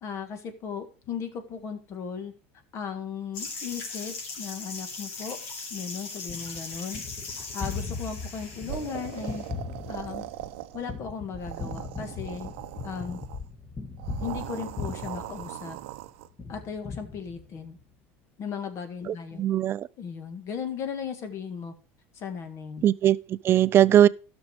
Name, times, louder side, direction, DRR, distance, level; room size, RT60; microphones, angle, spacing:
voice 1, 0.0-2.3 2.7-5.4 5.7-7.0 7.3-9.4 9.9-10.3 10.7-12.5 12.8-13.2 14.2-15.8 16.5-17.8 18.4-19.4 20.0-21.7 22.1-22.8, left 6 dB, 45° left, 1.7 m, -36 dB
sound 1, 3.3-9.5, left 4 dB, 75° left, 3.7 m, -39 dB
Gunshot gunfire, 6.3-16.0 16.4-17.8, left 4 dB, 25° left, 1.6 m, -39 dB
sound 2, 8.7-11.0 11.3-13.4 14.0-16.3, right 16 dB, 80° right, 0.6 m, -39 dB
voice 2, 19.1-19.9 22.8-24.1, right 11 dB, 35° right, 0.4 m, -20 dB
12.5 x 6.2 x 4.9 m
supercardioid pair, 105°, 7 cm